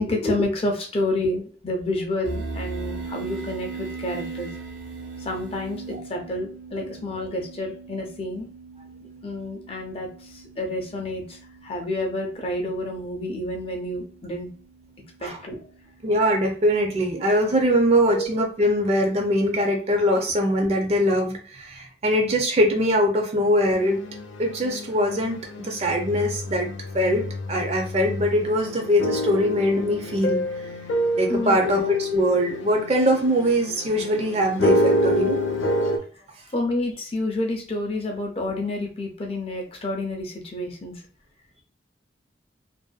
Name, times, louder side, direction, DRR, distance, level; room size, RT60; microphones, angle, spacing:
voice 1, 0.0-4.5 5.2-8.5 9.2-14.5 15.2-15.6 18.1-18.3 31.3-31.6 36.5-41.0, left 1 dB, 30° left, 1 dB, 0.5 m, -29 dB
sound 1, 2.2-17.3, right 4 dB, 80° right, 0.6 m, -39 dB
voice 2, 16.0-24.0 24.4-26.7 26.9-30.4 31.2-35.4, equal, 35° right, 3 dB, 0.5 m, -22 dB
sound 2, 23.6-36.0, left 1 dB, 90° left, 0.4 m, -28 dB
2.5 x 2.2 x 2.3 m, 0.41 s
head